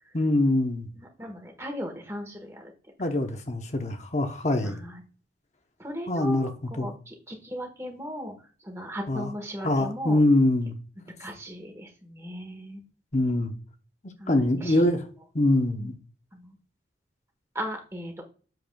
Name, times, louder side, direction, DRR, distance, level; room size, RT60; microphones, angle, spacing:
voice 1, 0.1-0.9 3.0-4.8 6.1-6.9 9.1-9.3 9.6-10.7 13.1-13.5 14.3-15.0 15.3-15.9, left 1 dB, 35° left, 1.0 m, -24 dB
voice 2, 1.0-2.7 4.6-5.0 5.8-8.3 8.6-10.2 11.2-12.8 14.2-14.9 15.8-15.9 16.3-16.5 17.5-18.2, equal, 15° right, 1.4 m, -37 dB
7.8 x 6.9 x 2.3 m
head